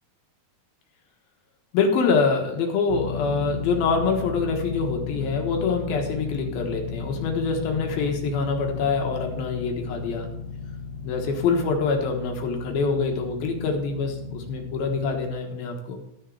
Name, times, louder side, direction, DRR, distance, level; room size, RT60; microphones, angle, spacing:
voice 1, 1.7-10.3 11.0-16.0, left 4 dB, 70° left, 2 dB, 3.1 m, -25 dB
sound 1, 2.9-15.3, left 5 dB, 45° left, 2.9 m, -35 dB
13.0 x 6.6 x 4.7 m, 0.86 s
omnidirectional pair, 4.6 m